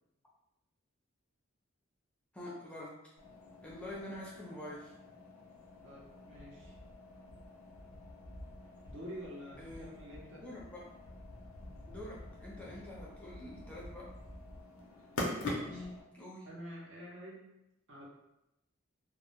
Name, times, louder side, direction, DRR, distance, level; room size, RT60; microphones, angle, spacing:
voice 1, 2.3-3.0 3.6-4.9 9.6-9.9 10.4-10.9 11.9-14.1 15.7-16.5, left 1 dB, 5° left, -5 dB, 0.4 m, -46 dB
sound 1, 3.2-16.0, left 1 dB, 85° left, 0.5 m, -45 dB
voice 2, 5.8-6.8 8.9-10.5 12.5-12.8 15.5-15.8 16.5-17.5 17.9-18.1, equal, 60° right, -3 dB, 0.6 m, -48 dB
2.1 x 2.0 x 2.9 m, 0.87 s
head